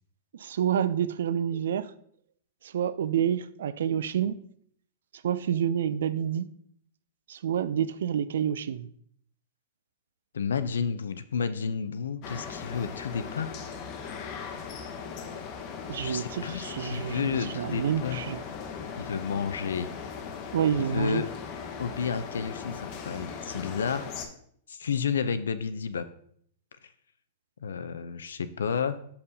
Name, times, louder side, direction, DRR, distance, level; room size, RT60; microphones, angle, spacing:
voice 1, 0.3-1.9 2.7-4.4 5.2-6.5 7.3-8.9 15.9-18.4 20.5-21.2, right 9 dB, 75° right, 0.3 m, -28 dB
voice 2, 10.3-13.6 16.0-18.2 19.0-19.9 20.8-21.3 21.8-24.1 24.7-26.1 27.6-29.0, left 6 dB, 80° left, 0.4 m, -31 dB
sound 1, 12.2-24.3, left 6 dB, 45° left, 0.8 m, -39 dB
6.7 x 5.5 x 2.7 m
hypercardioid pair, 110°, 0 cm